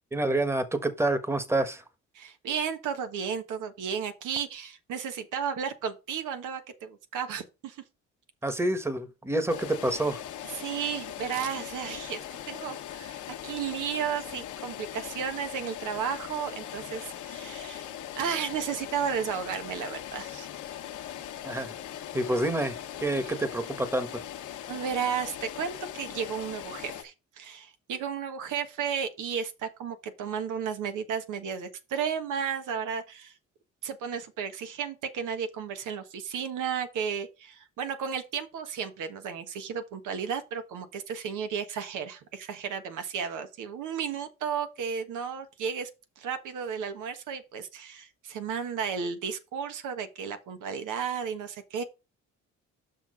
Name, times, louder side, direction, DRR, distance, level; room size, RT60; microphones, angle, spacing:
voice 1, 0.1-1.8 8.4-10.2 21.4-21.7 22.1-24.2, right 1 dB, 10° right, 1.3 m, -28 dB
voice 2, 2.1-7.8 10.5-17.9 18.2-20.5 23.2-23.3 24.7-33.3 33.8-45.9 46.2-51.8, right 7 dB, 85° right, 1.3 m, -33 dB
sound 1, 9.5-27.0, left 11 dB, 75° left, 1.2 m, -40 dB
6.3 x 5.9 x 4.9 m
cardioid pair, 90°, 30 cm